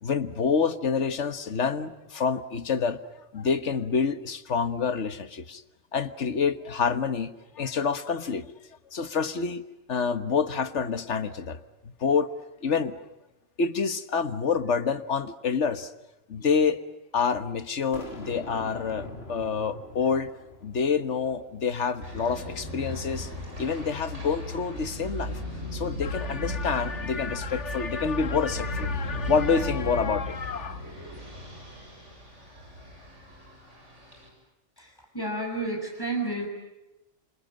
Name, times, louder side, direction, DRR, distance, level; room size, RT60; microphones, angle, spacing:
voice 1, 0.0-5.6 5.9-8.5 8.9-9.6 9.9-12.3 12.6-13.0 13.6-15.9 16.3-16.8 17.1-20.3 20.6-23.3 23.6-25.4 25.7-30.8, left 5 dB, 65° left, 11 dB, 1.6 m, -27 dB
Boom, 17.9-21.2, left 2 dB, 50° left, 3.6 m, -42 dB
sound 1, 22.0-34.3, left 1 dB, 65° right, 8.5 m, -36 dB
voice 2, 34.8-36.5, right 2 dB, 15° left, 3 dB, 6.7 m, -31 dB
29.0 x 27.0 x 7.6 m, 1.0 s
omnidirectional pair, 1.3 m